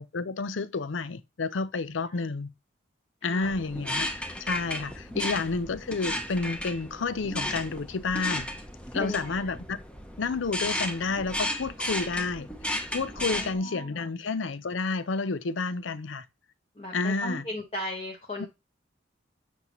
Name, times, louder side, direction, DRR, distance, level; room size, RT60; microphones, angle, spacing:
voice 1, 0.0-2.5 3.2-8.5 8.9-9.8 10.2-12.5 12.9-16.2 16.9-17.4, left 4 dB, 80° left, 0.6 m, -30 dB
sound 1, 3.4-13.5, left 1 dB, 5° left, 0.8 m, -34 dB
voice 2, 9.0-9.5 13.2-14.1 16.7-18.5, left 1 dB, 30° left, 1.4 m, -37 dB
8.2 x 5.5 x 3.1 m
head